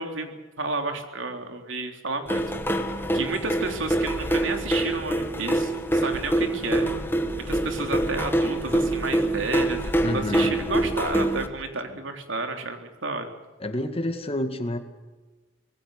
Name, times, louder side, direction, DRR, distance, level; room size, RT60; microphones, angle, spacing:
voice 1, 0.0-2.4 3.1-6.9 7.5-13.3, right 3 dB, 75° right, 5 dB, 3.6 m, -31 dB
sound 1, 2.3-11.5, right 1 dB, 10° left, 2.0 m, -25 dB
voice 2, 10.0-10.6 11.9-12.0 13.6-14.8, left 1 dB, 30° left, 7 dB, 2.1 m, -29 dB
25.5 x 20.5 x 6.7 m, 1.3 s
head